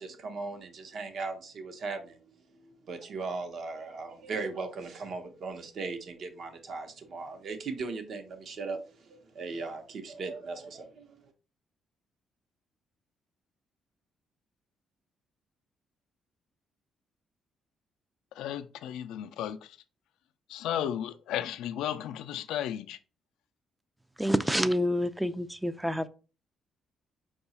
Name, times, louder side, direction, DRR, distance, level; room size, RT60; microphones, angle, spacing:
voice 1, 0.0-2.2 2.5-11.3, right 4 dB, 60° right, 0.8 m, -38 dB
voice 2, 18.3-19.8 20.5-23.0, left 10 dB, 90° left, 0.3 m, -34 dB
voice 3, 24.2-26.1, equal, 5° right, 0.3 m, -28 dB
4.7 x 2.3 x 4.0 m
cardioid pair, 90°, 0 cm